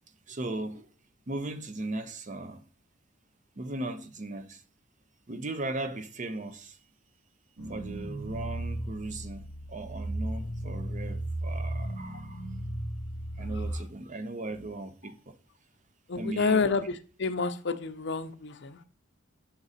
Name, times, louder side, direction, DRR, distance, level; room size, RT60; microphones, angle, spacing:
voice 1, 0.3-0.9 1.3-2.6 3.6-4.6 5.3-6.8 7.7-12.4 13.4-15.4 16.1-16.7, right 2 dB, 40° right, 0.6 m, -37 dB
sound 1, 7.6-13.7, right 1 dB, 90° right, 2.2 m, -35 dB
voice 2, 13.4-13.8 15.0-15.1 16.1-18.8, left 4 dB, 60° left, 0.6 m, -30 dB
6.1 x 4.9 x 4.1 m
head